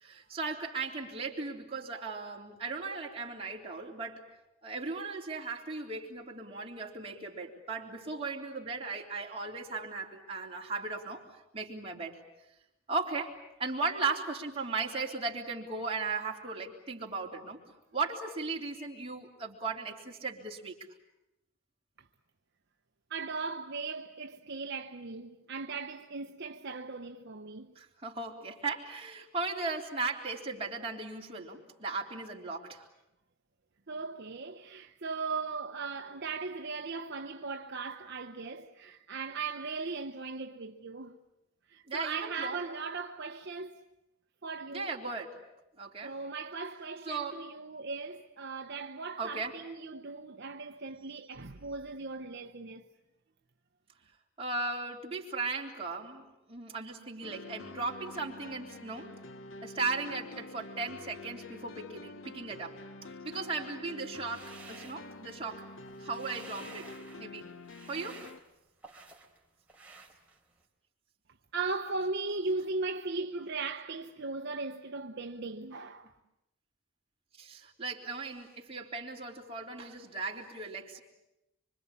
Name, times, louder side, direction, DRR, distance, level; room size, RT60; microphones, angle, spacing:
voice 1, 0.0-4.3 4.6-11.2 11.5-12.2 12.9-13.3 13.6-17.6 17.9-20.7 27.8-32.8 41.9-42.6 44.7-45.4 45.8-46.1 47.1-47.3 49.2-49.5 54.4-59.1 59.6-62.7 63.2-65.6 66.0-66.9 67.2-67.4 67.9-68.2 77.4-81.0, right 3 dB, 30° right, 3.6 m, -37 dB
voice 2, 23.1-27.7 33.9-41.2 41.7-43.8 44.4-44.9 46.0-52.8 71.5-76.1, right 4 dB, 55° right, 0.9 m, -38 dB
sound 1, 57.2-68.4, left 3 dB, 70° left, 1.1 m, -47 dB
sound 2, 64.1-65.5 65.8-67.3 67.6-69.4 69.7-70.6, right 4 dB, 5° right, 3.3 m, -52 dB
25.5 x 25.5 x 8.6 m
head